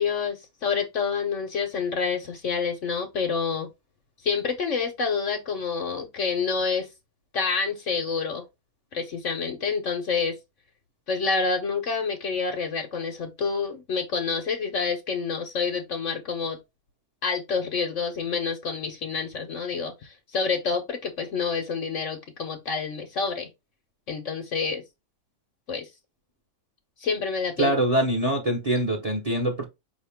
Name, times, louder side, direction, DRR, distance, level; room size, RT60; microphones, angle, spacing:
voice 1, 0.0-3.7 4.2-6.9 7.3-8.4 8.9-10.4 11.1-16.6 17.2-23.5 24.1-24.8 25.7-25.9 27.0-27.7, left 5 dB, 60° left, 1.2 m, -28 dB
voice 2, 27.6-29.6, right 1 dB, 30° right, 1.0 m, -24 dB
5.2 x 2.8 x 3.5 m
omnidirectional pair, 1.5 m